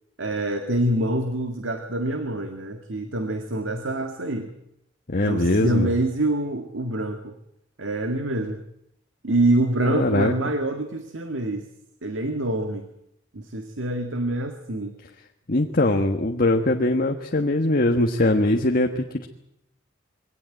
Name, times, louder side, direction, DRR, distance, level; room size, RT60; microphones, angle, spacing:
voice 1, 0.2-4.5 5.2-7.4 7.8-8.6 9.2-11.6 12.0-12.9 13.3-14.9, right 1 dB, 70° right, 6 dB, 1.8 m, -26 dB
voice 2, 5.1-5.9 9.8-10.3 15.5-19.3, left 2 dB, 45° left, 4 dB, 1.4 m, -21 dB
23.0 x 18.0 x 8.9 m, 0.78 s
head